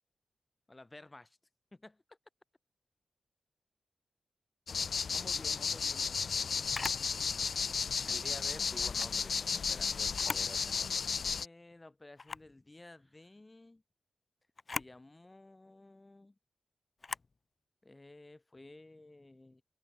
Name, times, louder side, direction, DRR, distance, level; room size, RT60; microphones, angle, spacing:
voice 1, 0.7-1.4 1.7-2.2 5.1-6.2 11.2-13.8 14.7-16.4 17.8-19.6, left 2 dB, 20° left, 6.5 m, -54 dB
sound 1, 4.7-11.5, left 5 dB, 65° left, 0.5 m, -34 dB
Camera, 6.7-7.1 8.8-9.1 10.1-10.5 11.0-11.1 12.2-12.5 14.6-15.0 17.0-17.3, left 3 dB, 40° left, 4.9 m, -40 dB
voice 2, 8.1-11.4, equal, 5° left, 6.8 m, -50 dB
wide cardioid pair, 85°, 0 cm